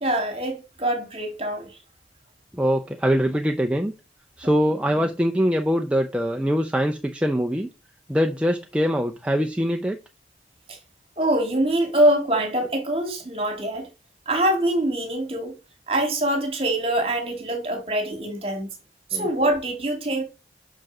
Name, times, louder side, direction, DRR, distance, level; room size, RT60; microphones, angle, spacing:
voice 1, 0.0-1.8 10.7-10.8 11.2-13.9 14.3-15.5 15.9-18.7 19.1-20.2, right 1 dB, 30° right, 1.9 m, -24 dB
voice 2, 2.6-3.9 4.4-7.7 8.1-10.0 19.1-19.3, equal, 5° right, 0.5 m, -23 dB
5.9 x 5.1 x 6.0 m
head